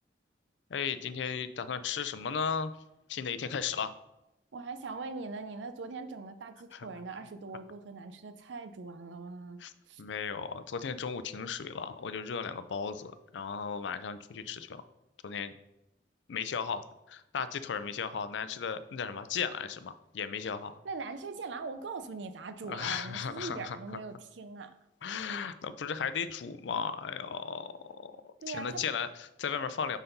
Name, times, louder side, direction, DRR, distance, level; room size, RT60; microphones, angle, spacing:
voice 1, 0.7-2.7 3.1-3.9 6.7-6.9 9.6-9.7 10.0-14.8 15.2-15.5 16.3-20.8 22.7-23.8 25.0-30.0, left 6 dB, 80° left, 12 dB, 0.5 m, -35 dB
voice 2, 4.5-9.6 9.9-10.0 20.8-24.7 28.4-28.8, right 4 dB, 90° right, 10 dB, 0.6 m, -41 dB
5.7 x 4.1 x 5.3 m, 0.92 s
head